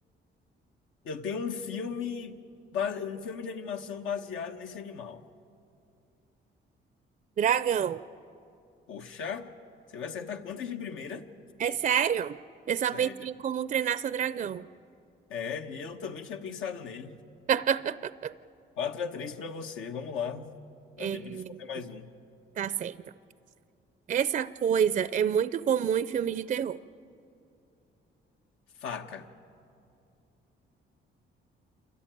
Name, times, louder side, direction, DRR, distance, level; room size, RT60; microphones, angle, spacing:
voice 1, 1.0-2.4 2.7-5.2 8.9-9.5 9.9-11.3 12.9-13.1 15.3-17.2 18.8-20.6 21.0-22.1 28.8-29.3, left 6 dB, 85° left, 5 dB, 1.2 m, -36 dB
voice 2, 7.4-8.0 11.6-12.4 12.7-14.7 17.5-18.3 21.0-21.6 22.6-23.0 24.1-26.8, right 8 dB, 40° right, 15 dB, 0.4 m, -28 dB
28.0 x 14.0 x 9.0 m, 2.6 s
cardioid pair, 90°, 20 cm